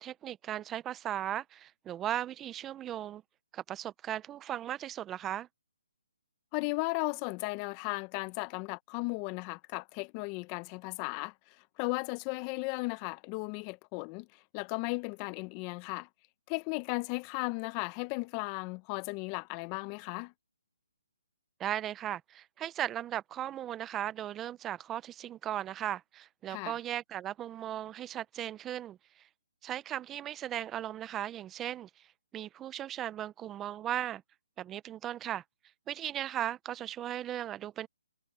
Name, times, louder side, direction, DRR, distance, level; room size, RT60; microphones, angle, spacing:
voice 1, 0.0-3.2 3.5-5.5 21.6-29.2 29.6-32.1 32.3-34.2 34.6-35.4 35.9-37.9, right 11 dB, 15° right, 0.8 m, -37 dB
voice 2, 6.5-11.3 11.8-14.3 14.5-16.1 16.5-20.3 26.5-26.7, left 26 dB, 25° left, 1.4 m, -35 dB
hypercardioid pair, 150°, 0 cm